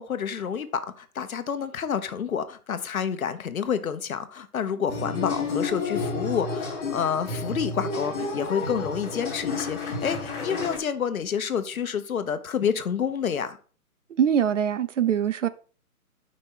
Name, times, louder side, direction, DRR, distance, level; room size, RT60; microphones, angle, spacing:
voice 1, 0.0-13.6, left 7 dB, 70° left, 0.9 m, -29 dB
sound 1, 4.9-10.8, left 3 dB, 10° left, 0.9 m, -31 dB
voice 2, 14.2-15.5, right 8 dB, 55° right, 0.5 m, -23 dB
5.2 x 4.4 x 5.6 m
figure-of-eight pair, 145°, 44 cm